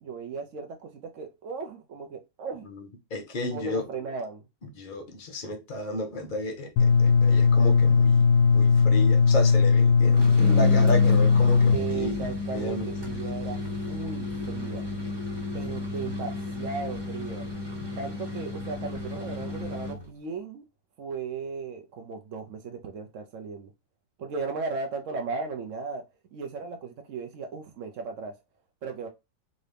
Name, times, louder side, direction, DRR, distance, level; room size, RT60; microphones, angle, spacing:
voice 1, 0.0-2.7 3.5-4.4 10.4-10.9 11.7-13.6 13.9-14.9 15.5-17.5 18.0-20.7 21.0-23.7 24.2-26.0 26.3-28.3 28.8-29.1, right 5 dB, 90° right, 0.6 m, -36 dB
voice 2, 2.6-3.9 4.6-12.9, left 1 dB, 55° left, 0.5 m, -33 dB
sound 1, 6.8-11.8, left 5 dB, 85° left, 1.4 m, -19 dB
sound 2, 10.0-20.1, left 2 dB, 15° right, 1.0 m, -33 dB
3.8 x 2.7 x 3.3 m
omnidirectional pair, 2.1 m